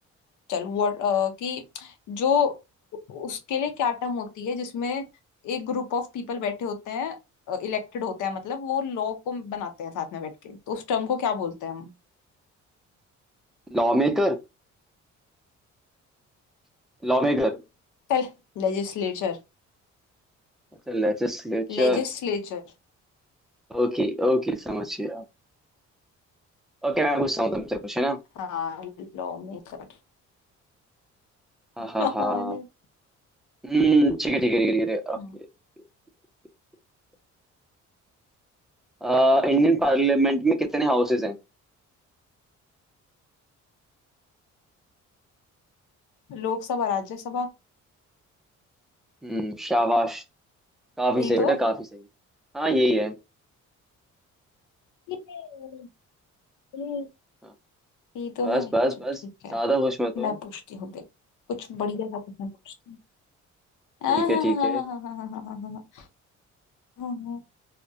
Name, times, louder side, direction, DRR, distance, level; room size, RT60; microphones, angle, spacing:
voice 1, 0.5-2.6 3.1-5.0 5.4-7.2 7.5-11.9 18.1-19.4 21.7-22.6 28.4-29.8 32.0-32.7 35.2-35.3 46.3-47.5 51.2-51.6 55.1-55.9 56.7-57.1 58.1-58.7 59.4-59.6 60.2-61.0 61.5-63.0 64.0-66.0 67.0-67.4, left 6 dB, 80° left, 0.7 m, -29 dB
voice 2, 13.7-14.4 17.0-17.6 20.9-22.0 23.7-25.2 26.8-28.2 31.8-32.6 33.6-35.2 39.0-41.4 49.2-50.2 51.0-51.8 52.5-53.2 57.4-57.5 58.4-59.2 59.5-60.3 64.1-64.8, right 1 dB, ahead, 0.4 m, -23 dB
2.2 x 2.1 x 2.6 m
cardioid pair, 90°, 30 cm